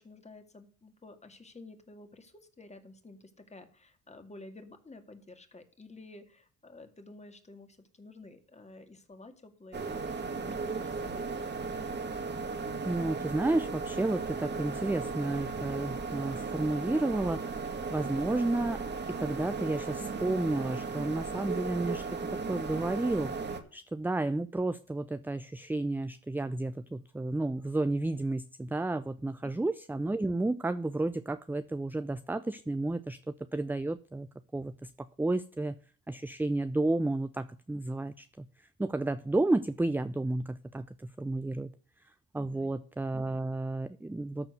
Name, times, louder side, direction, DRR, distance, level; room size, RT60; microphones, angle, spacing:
voice 1, 0.0-11.5 29.4-29.5 42.4-42.7, left 2 dB, 20° left, 7 dB, 2.2 m, -51 dB
sound 1, 9.7-23.6, right 4 dB, 35° right, 1.7 m, -36 dB
voice 2, 12.8-17.5 17.9-18.8 19.2-23.3 23.7-34.3 34.5-35.8 36.1-38.5 38.8-41.7 42.3-44.5, right 2 dB, 5° right, 12 dB, 0.5 m, -32 dB
13.5 x 4.5 x 7.8 m, 0.42 s
cardioid pair, 90°, 30 cm